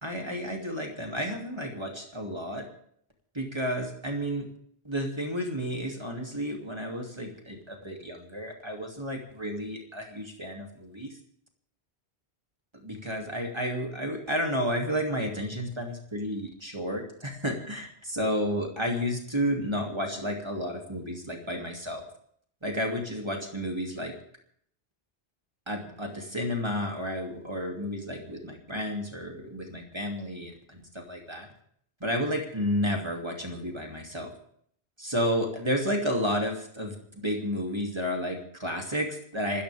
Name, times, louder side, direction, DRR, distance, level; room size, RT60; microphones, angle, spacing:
voice 1, 0.0-2.6 3.3-4.5 4.8-11.2 12.8-22.0 22.6-24.1 25.7-31.5 32.0-34.3 35.0-39.6, equal, 25° right, 1 dB, 3.0 m, -31 dB
26.0 x 14.0 x 3.6 m, 0.63 s
omnidirectional pair, 1.1 m